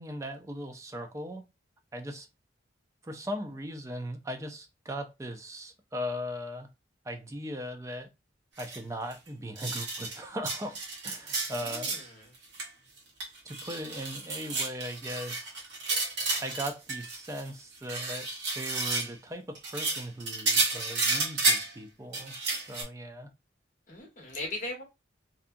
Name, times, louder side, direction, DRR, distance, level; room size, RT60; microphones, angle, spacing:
voice 1, 0.0-1.4 1.9-2.3 3.0-6.7 7.0-8.1 8.6-10.8 11.0-11.9 13.4-15.5 16.4-18.3 18.6-22.3 22.7-23.3, equal, 15° right, 0.4 m, -38 dB
sound 1, 8.6-8.8 9.1-9.2 9.6-10.2 10.5-12.0 12.3-12.7 13.0-17.5 17.7-19.1 19.5-21.7 22.1-22.8, right 3 dB, 65° right, 1.1 m, -31 dB
voice 2, 11.6-12.3 23.9-24.8, left 2 dB, 40° left, 1.1 m, -39 dB
2.7 x 2.3 x 2.5 m
head